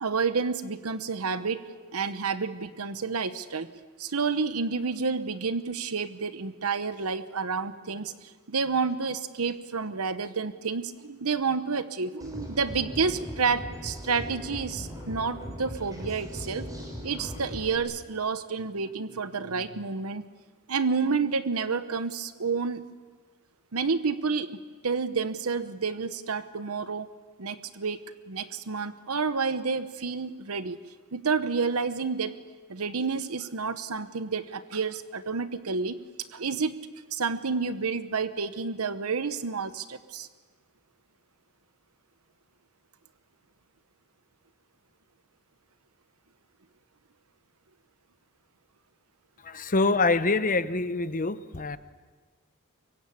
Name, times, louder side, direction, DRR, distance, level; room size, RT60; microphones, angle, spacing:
voice 1, 0.0-3.7 4.0-16.7 17.0-20.3 20.7-22.8 23.7-27.1 27.4-28.0 28.3-30.8 31.1-32.4 32.7-36.0 36.3-36.8 37.1-40.3, right 5 dB, 75° right, 12 dB, 1.0 m, -29 dB
sound 1, 12.2-17.8, equal, 15° right, 5.4 m, -39 dB
voice 2, 49.5-51.8, left 3 dB, 40° left, 13 dB, 0.9 m, -25 dB
24.5 x 23.5 x 8.5 m, 1.4 s
head